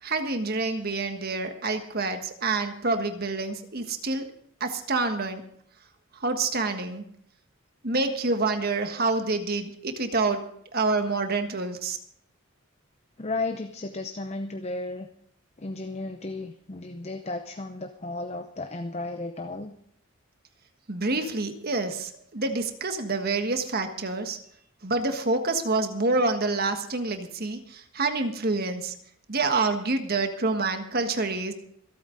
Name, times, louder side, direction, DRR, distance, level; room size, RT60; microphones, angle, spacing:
voice 1, 0.0-4.3 4.6-5.4 6.1-7.0 7.8-10.4 10.7-12.0 20.9-24.4 24.8-28.9 29.3-31.5, right 3 dB, 45° right, 7 dB, 1.5 m, -27 dB
voice 2, 13.2-15.1 15.6-19.7, left 2 dB, 30° left, 7 dB, 0.7 m, -34 dB
26.5 x 8.8 x 3.9 m, 0.67 s
head